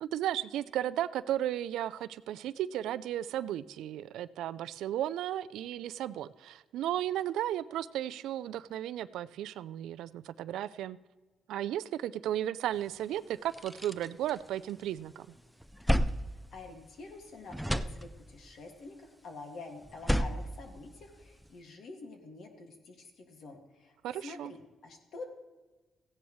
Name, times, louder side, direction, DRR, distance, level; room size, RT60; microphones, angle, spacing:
voice 1, 0.0-11.0 11.5-15.3 24.0-24.5, right 12 dB, 85° right, 16 dB, 0.4 m, -34 dB
sound 1, 12.9-13.0 13.3-15.0 15.4-17.2 17.5-18.5 19.8-21.5, equal, ahead, 0.5 m, -33 dB
voice 2, 16.5-24.0 24.2-25.3, left 3 dB, 65° left, 3 dB, 2.1 m, -47 dB
15.5 x 10.0 x 3.1 m, 1.2 s
cardioid pair, 90°, 0 cm